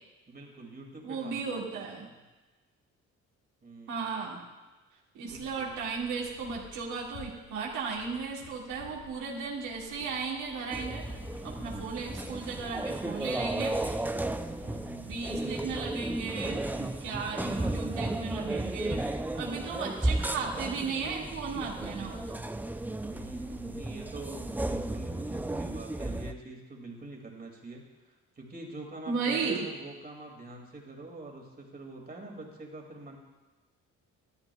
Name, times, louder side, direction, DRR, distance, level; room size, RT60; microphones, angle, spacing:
voice 1, 0.3-2.2 3.6-4.2 5.2-5.7 14.6-15.4 23.1-33.2, right 2 dB, 30° right, 0 dB, 2.3 m, -45 dB
voice 2, 1.0-2.1 3.9-4.4 5.1-11.1 11.4-13.8 15.0-19.0 19.3-22.4 29.1-29.7, right 5 dB, 85° right, -4 dB, 2.1 m, -35 dB
Keys jangling, 5.3-15.8, left 5 dB, 80° left, 2.0 m, -52 dB
sound 1, 10.7-26.3, right 2 dB, 5° right, 0.4 m, -34 dB
12.5 x 12.5 x 2.3 m, 1.2 s
cardioid pair, 90°, 30 cm